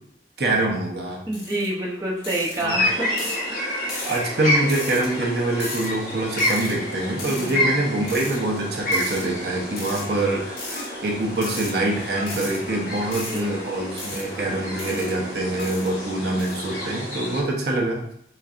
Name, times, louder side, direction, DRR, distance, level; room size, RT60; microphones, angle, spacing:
voice 1, 0.4-1.2 2.6-2.8 4.0-18.1, right 2 dB, 65° right, -1 dB, 0.9 m, -25 dB
sound 1, 1.3-1.7 2.2-2.6 3.2-3.4 3.9-4.2 4.7-5.1 5.6-5.9 6.4-6.7 7.2-7.5 8.1-8.4 8.9-9.2 9.8-10.1 10.6-10.9 11.4-11.7 12.2-12.6 13.1-13.4 14.0-14.2 14.8-15.1 15.6-15.9 16.4-16.6, left 2 dB, 65° left, 1.7 m, -35 dB
voice 2, 1.3-3.1 3.5-3.8 7.2-7.8 13.3-13.5, right 1 dB, 20° right, -5 dB, 0.8 m, -28 dB
sound 2, 2.7-17.4, left 1 dB, 45° left, 1.3 m, -29 dB
4.5 x 4.1 x 2.5 m, 0.72 s
head